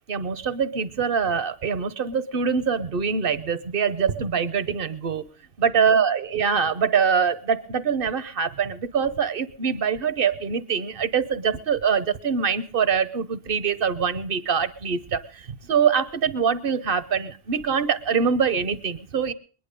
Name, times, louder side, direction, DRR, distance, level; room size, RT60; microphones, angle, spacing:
voice 1, 0.1-5.2 5.6-15.4 15.7-19.3, right 6 dB, 65° right, 14 dB, 1.2 m, -24 dB
21.5 x 11.0 x 5.1 m, 0.39 s
omnidirectional pair, 1.0 m